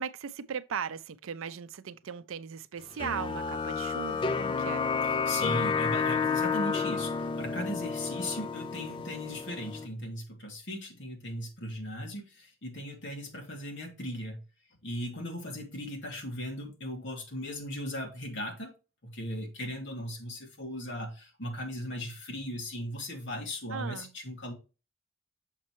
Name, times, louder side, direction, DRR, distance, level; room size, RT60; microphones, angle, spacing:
voice 1, 0.0-4.9 23.7-24.1, right 7 dB, 70° right, 0.5 m, -38 dB
sound 1, 3.0-9.9, left 5 dB, 25° left, 0.4 m, -31 dB
voice 2, 5.0-14.4 14.8-18.7 19.0-24.5, equal, 60° left, 1.8 m, -37 dB
6.5 x 5.3 x 3.0 m
head